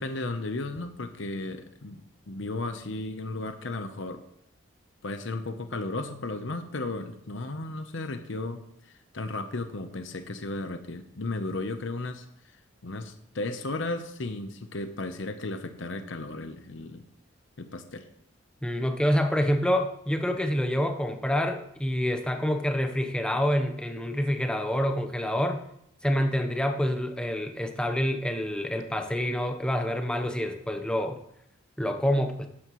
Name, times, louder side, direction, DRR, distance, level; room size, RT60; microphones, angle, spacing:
voice 1, 0.0-4.2 5.0-12.3 12.8-17.0 17.6-18.0, left 2 dB, 70° left, 8 dB, 0.8 m, -34 dB
voice 2, 18.6-25.6 26.0-31.2 31.8-32.5, equal, 5° left, 6 dB, 0.8 m, -27 dB
12.5 x 9.8 x 3.1 m, 0.74 s
head